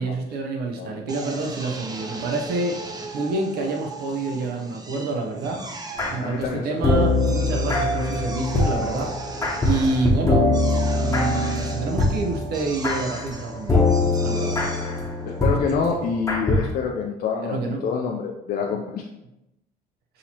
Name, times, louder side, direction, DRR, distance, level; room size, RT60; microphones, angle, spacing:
voice 1, 0.0-2.8 3.1-5.6 6.1-9.3 9.6-10.5 11.0-13.9 14.2-14.6 17.4-17.8, right 3 dB, 70° right, 2 dB, 0.7 m, -27 dB
Drill, 1.1-16.4, right 2 dB, 25° right, 0.5 m, -38 dB
sound 1, 6.0-6.5 6.8-16.7, left 2 dB, 20° left, 0.9 m, -23 dB
voice 2, 6.2-7.0 15.3-19.1, left 5 dB, 60° left, 0 dB, 0.5 m, -27 dB
6.3 x 2.8 x 2.9 m, 0.90 s
cardioid pair, 110°, 17 cm